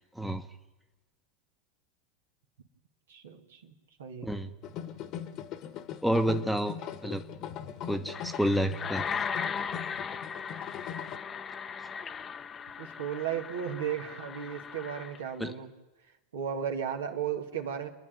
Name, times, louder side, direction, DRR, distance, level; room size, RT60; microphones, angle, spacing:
voice 1, 3.1-3.7 4.0-4.3 12.8-15.7 16.3-17.9, right 8 dB, 70° right, 3 dB, 2.2 m, -35 dB
sound 1, 4.6-11.2, left 9 dB, 45° left, 1.5 m, -41 dB
voice 2, 6.0-6.8 7.0-7.2 7.8-9.0 11.8-11.9 15.4-15.5, equal, ahead, 6 dB, 1.2 m, -29 dB
sound 2, 8.1-15.3, left 6 dB, 25° left, 0.9 m, -38 dB
29.5 x 11.0 x 9.2 m, 1.1 s
figure-of-eight pair, 90°, 0 cm